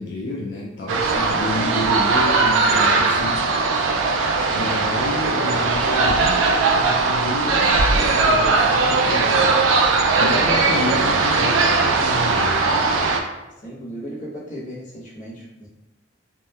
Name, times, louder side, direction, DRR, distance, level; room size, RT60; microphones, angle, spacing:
voice 1, 0.0-3.6 4.5-6.4 6.7-9.4 10.2-13.0, left 2 dB, 65° left, -3 dB, 0.3 m, -30 dB
sound 1, 0.9-13.2, right 3 dB, 90° right, 0.3 m, -19 dB
voice 2, 1.0-1.7 4.3-4.6 13.6-15.7, equal, 40° left, -6 dB, 0.7 m, -36 dB
2.8 x 2.0 x 2.2 m, 0.96 s
head